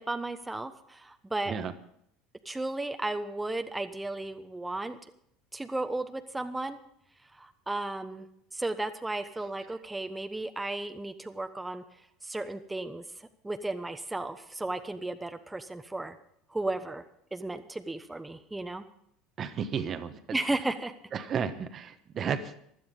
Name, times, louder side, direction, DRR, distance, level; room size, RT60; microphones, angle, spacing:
voice 1, 0.0-1.6 2.4-5.0 5.5-6.8 7.3-8.3 8.5-11.8 12.2-16.2 16.5-17.0 17.3-18.8 20.3-20.9, right 2 dB, 10° right, 7 dB, 1.0 m, -34 dB
voice 2, 19.4-20.2 21.1-22.6, right 7 dB, 40° right, 10 dB, 1.2 m, -33 dB
15.5 x 12.0 x 5.3 m, 0.74 s
hypercardioid pair, 75°, 0 cm